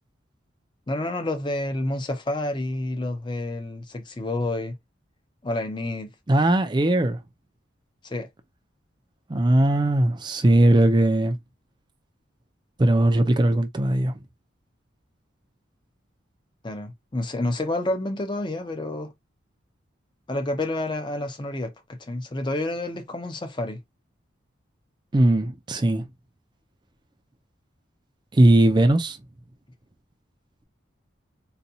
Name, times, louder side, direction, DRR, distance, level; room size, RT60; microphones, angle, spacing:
voice 1, 0.9-4.8 5.4-6.1 8.0-8.3 16.6-19.1 20.3-23.8, left 1 dB, 25° left, 0.6 m, -29 dB
voice 2, 6.3-7.2 9.3-11.4 12.8-14.1 25.1-26.0 28.3-29.2, right 1 dB, 25° right, 0.4 m, -19 dB
4.1 x 2.2 x 2.7 m
head